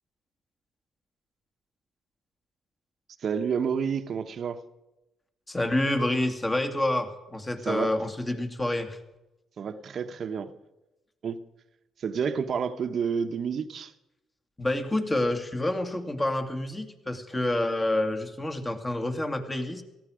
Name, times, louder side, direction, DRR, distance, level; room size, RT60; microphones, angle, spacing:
voice 1, 3.2-4.6 7.6-7.9 9.6-10.5 11.2-11.4 12.0-13.9, right 6 dB, 60° right, 9 dB, 1.0 m, -29 dB
voice 2, 5.5-9.0 14.6-19.8, left 1 dB, 20° left, 6 dB, 2.4 m, -28 dB
18.0 x 15.0 x 5.0 m, 0.97 s
supercardioid pair, 65°, 0 cm